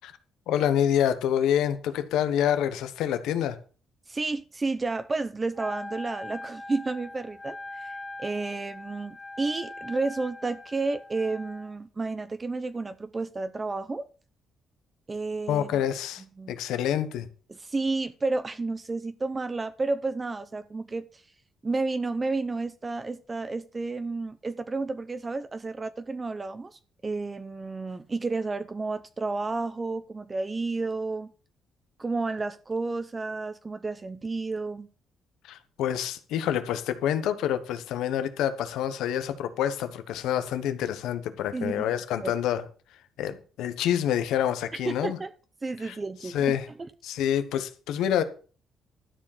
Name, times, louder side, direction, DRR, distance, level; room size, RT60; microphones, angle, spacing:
voice 1, 0.5-3.6 15.5-17.3 35.5-42.6 43.2-45.2 45.8-46.0 46.2-46.7 47.0-48.2, left 10 dB, 90° left, 1.1 m, -27 dB
voice 2, 4.1-14.1 15.1-15.7 16.4-16.5 17.5-21.2 21.6-31.3 32.0-34.9 41.5-41.8 42.2-42.3 44.7-45.3 45.6-46.6, right 3 dB, 25° right, 0.6 m, -31 dB
Wind instrument woodwind instrument, 5.5-11.7, left 2 dB, 25° left, 1.4 m, -41 dB
12.5 x 4.9 x 7.3 m
cardioid pair, 90°, 0 cm